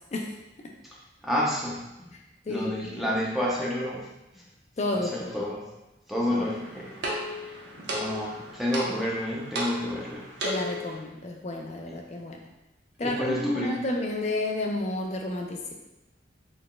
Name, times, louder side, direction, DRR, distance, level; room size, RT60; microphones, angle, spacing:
voice 1, 1.2-2.1 2.5-4.1 4.9-5.6 6.1-7.0 7.3-7.5 7.9-10.3 11.9-12.0 13.0-13.8, equal, ahead, -5 dB, 0.6 m, -30 dB
voice 2, 2.5-3.1 4.8-5.3 6.3-6.5 10.4-12.4 13.0-15.7, left 2 dB, 35° left, 1 dB, 0.4 m, -31 dB
sound 1, 6.4-11.0, equal, 70° right, 0.7 m, -35 dB
4.0 x 3.5 x 2.2 m, 0.98 s
head